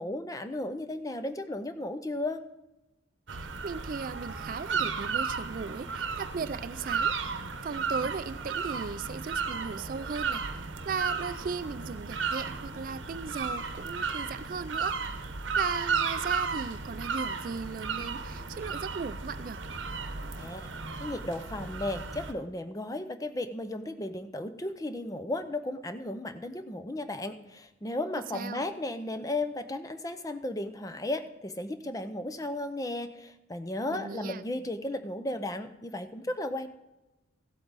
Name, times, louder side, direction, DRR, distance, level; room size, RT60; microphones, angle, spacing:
voice 1, 0.0-2.4 20.4-20.7 21.0-36.7, left 1 dB, 20° left, 10 dB, 0.5 m, -35 dB
voice 2, 3.3-7.1 7.6-10.5 10.9-15.0 15.6-19.6 28.3-28.7 33.9-34.4, right 5 dB, 45° right, 14 dB, 0.4 m, -37 dB
sound 1, 3.3-22.3, right 5 dB, 80° right, 0.9 m, -34 dB
15.0 x 8.2 x 4.0 m, 1.0 s
head